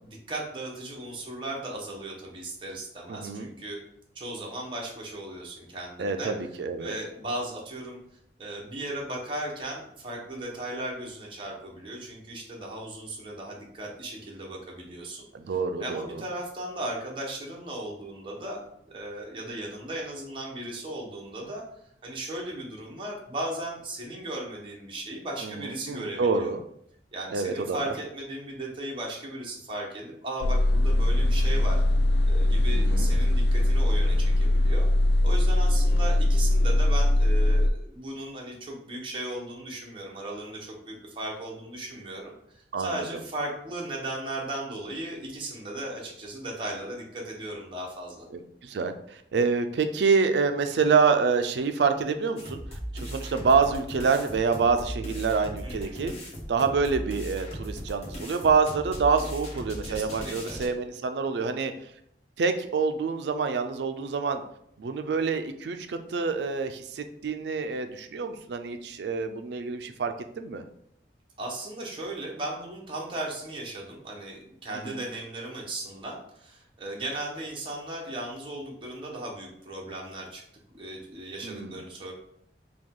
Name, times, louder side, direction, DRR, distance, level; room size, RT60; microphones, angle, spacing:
voice 1, 0.0-3.8 4.1-6.3 6.8-8.0 8.4-21.6 22.0-26.5 27.1-31.8 32.3-34.9 35.2-48.3 55.6-56.0 59.8-60.6 71.4-80.4 80.8-82.1, right 1 dB, 30° right, -2 dB, 0.9 m, -37 dB
voice 2, 3.1-3.5 6.0-7.0 15.3-16.2 25.4-26.6 27.3-27.9 32.7-33.1 42.7-42.9 48.6-48.9 49.3-52.6 52.9-56.1 56.5-61.7 62.4-64.4 64.8-70.6 74.9-75.0 81.4-81.7, right 5 dB, 75° right, 8 dB, 0.4 m, -26 dB
sound 1, 30.4-37.7, left 1 dB, 65° left, 0.3 m, -21 dB
sound 2, 52.4-60.7, equal, 35° left, 1.0 m, -38 dB
4.8 x 2.3 x 3.6 m, 0.71 s
head